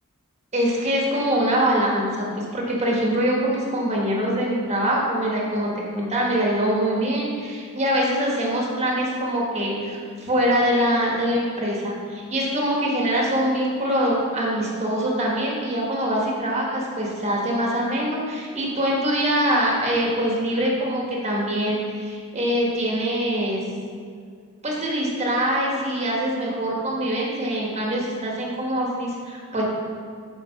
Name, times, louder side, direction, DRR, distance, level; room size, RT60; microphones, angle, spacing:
voice 1, 0.5-2.3 2.5-23.6 24.6-29.6, equal, 30° right, -3 dB, 1.4 m, -23 dB
7.5 x 4.6 x 5.7 m, 2.1 s
head